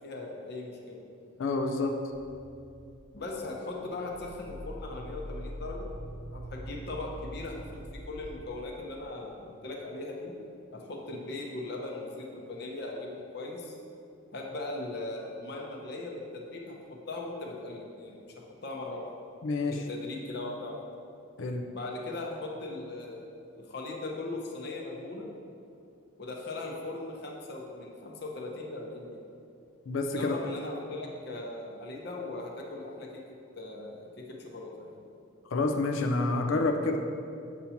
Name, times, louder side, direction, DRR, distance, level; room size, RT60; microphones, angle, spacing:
voice 1, 0.0-1.0 3.1-5.9 6.3-7.8 8.1-10.3 10.7-13.7 14.3-19.0 19.7-20.8 21.7-23.3 23.5-25.3 26.2-29.2 30.1-33.2 33.6-34.9, left 2 dB, 50° left, -1 dB, 0.8 m, -39 dB
voice 2, 1.4-1.9 19.4-19.8 21.4-21.7 29.9-30.3 35.5-37.0, left 3 dB, 80° left, 4 dB, 0.5 m, -28 dB
sound 1, 2.1-8.5, equal, 40° right, 0.4 m, -43 dB
7.3 x 2.8 x 5.7 m, 2.6 s
head